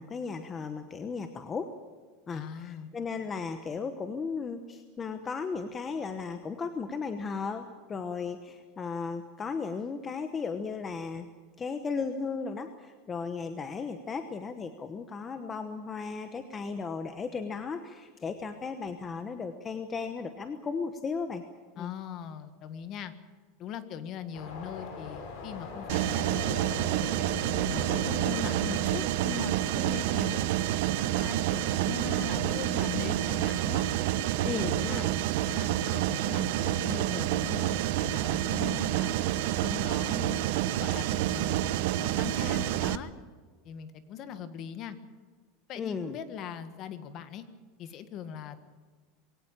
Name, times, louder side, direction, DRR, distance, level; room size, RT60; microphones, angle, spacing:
voice 1, 0.0-1.7 2.3-11.3 11.6-21.4 21.8-21.9 34.4-35.2 45.8-46.2, left 5 dB, 15° left, 8 dB, 1.1 m, -35 dB
voice 2, 2.3-2.9 21.8-23.1 23.6-26.9 27.6-30.4 31.0-33.9 34.4-35.0 35.5-39.2 39.6-40.4 40.8-43.1 43.6-45.0 45.7-47.5 47.8-48.7, left 8 dB, 35° left, 11 dB, 1.6 m, -40 dB
sound 1, 24.3-37.1, left 4 dB, 50° left, 5.6 m, -44 dB
Mechanisms, 25.9-43.0, right 13 dB, 60° right, 0.9 m, -28 dB
22.0 x 17.5 x 8.8 m, 1.5 s
supercardioid pair, 175°, 0 cm